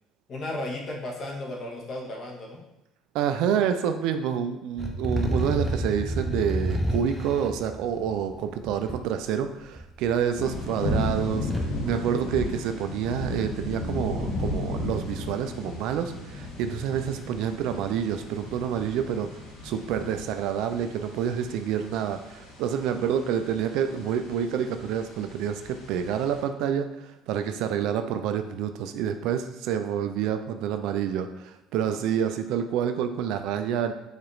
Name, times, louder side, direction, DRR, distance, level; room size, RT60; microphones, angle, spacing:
voice 1, 0.3-2.6, left 1 dB, 40° left, 0 dB, 0.9 m, -34 dB
voice 2, 3.1-11.5 11.8-33.9, right 8 dB, 70° right, 8 dB, 0.3 m, -28 dB
sound 1, 4.8-8.9 9.8-10.5 10.8-11.7, equal, ahead, 0.5 m, -30 dB
sound 2, 10.3-26.4, left 2 dB, 90° left, 1.1 m, -35 dB
4.8 x 2.4 x 3.1 m, 0.88 s
cardioid pair, 125°, 0 cm